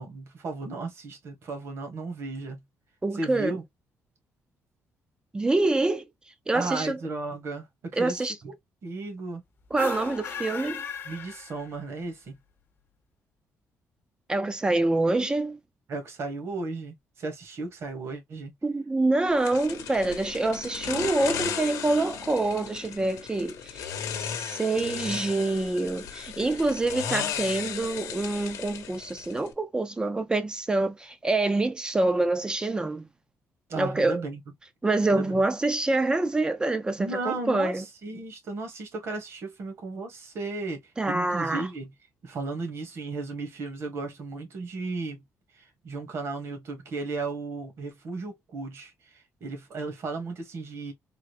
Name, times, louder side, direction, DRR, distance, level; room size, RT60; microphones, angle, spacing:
voice 1, 0.0-2.6 3.1-3.6 6.5-8.5 8.8-9.4 11.0-12.4 15.9-18.5 33.7-34.4 35.1-35.4 37.0-41.9 42.2-45.2 45.5-50.9, right 3 dB, 55° right, 1.4 m, -35 dB
voice 2, 3.0-3.5 5.3-6.1 6.5-7.0 7.9-8.3 9.7-10.8 14.3-15.6 18.6-33.1 33.8-34.2 34.8-37.8 41.0-41.7, right 2 dB, 15° right, 0.4 m, -26 dB
sound 1, 9.7-12.0, left 7 dB, 40° left, 0.7 m, -37 dB
sound 2, 19.4-29.5, left 8 dB, 85° left, 0.8 m, -35 dB
3.7 x 2.1 x 3.1 m
cardioid pair, 140°, 5 cm